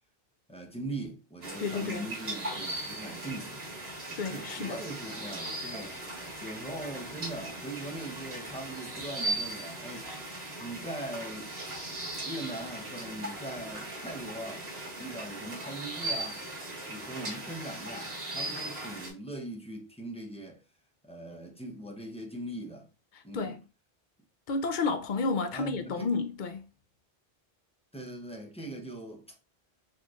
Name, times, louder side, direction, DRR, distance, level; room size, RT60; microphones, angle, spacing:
voice 1, 0.5-3.6 4.2-6.0 6.4-10.1 10.6-11.5 12.2-16.4 16.9-20.6 21.0-22.9 23.2-23.6 25.5-26.1 27.9-29.4, right 1 dB, 5° left, 0.7 m, -41 dB
sound 1, 1.4-19.1, right 1 dB, 90° right, 1.9 m, -38 dB
voice 2, 1.6-2.1 4.2-4.8 23.3-23.6 24.5-26.7, left 4 dB, 60° left, 0.6 m, -31 dB
4.1 x 3.1 x 2.4 m
omnidirectional pair, 1.0 m